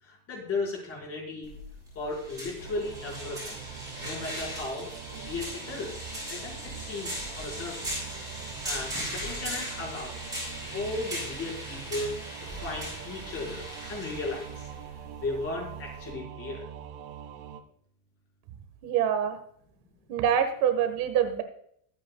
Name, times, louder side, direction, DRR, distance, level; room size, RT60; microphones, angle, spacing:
voice 1, 0.0-1.5 1.9-3.6 4.0-6.0 6.3-8.1 8.6-10.3 10.7-12.1 12.4-13.6 13.9-14.7 15.2-16.6, left 3 dB, 35° left, -2 dB, 5.1 m, -36 dB
sound 1, 1.4-16.1, equal, 10° right, 5.9 m, -39 dB
Singing / Musical instrument, 2.6-17.6, right 8 dB, 85° right, 1.8 m, -43 dB
voice 2, 18.8-19.4 20.1-21.4, right 9 dB, 55° right, 7 dB, 1.6 m, -25 dB
22.5 x 9.1 x 2.3 m, 0.67 s
cardioid pair, 165°, 43 cm